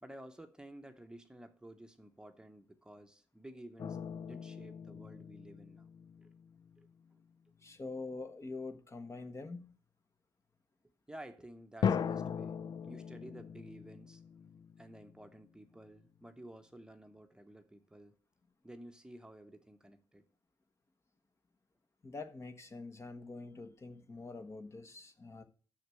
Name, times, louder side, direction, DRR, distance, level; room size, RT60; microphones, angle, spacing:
voice 1, 0.0-4.0 4.2-5.9 6.2-6.3 6.8-6.9 11.1-12.6 12.8-14.2 14.8-18.2 18.6-20.2, right 1 dB, 10° right, 0.9 m, -53 dB
sound 1, 3.8-6.9 11.8-15.4, left 7 dB, 55° left, 0.4 m, -39 dB
voice 2, 7.6-9.7 22.0-25.4, left 3 dB, 35° left, 1.2 m, -45 dB
6.5 x 6.4 x 7.6 m
cardioid pair, 85°, 8 cm